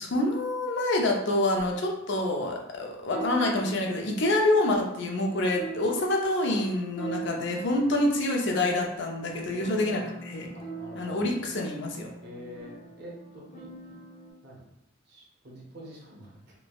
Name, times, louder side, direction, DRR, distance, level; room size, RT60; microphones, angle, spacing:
voice 1, 0.0-10.5 10.9-12.1, left 1 dB, 55° left, 1 dB, 0.4 m, -27 dB
sound 1, 1.6-1.7 3.1-14.3, right 3 dB, 40° left, 0.8 m, -42 dB
voice 2, 9.5-10.1 10.5-11.3 12.2-14.0 14.4-14.7 15.1-16.4, equal, 50° right, -3 dB, 0.7 m, -46 dB
3.2 x 2.0 x 2.2 m, 0.82 s
head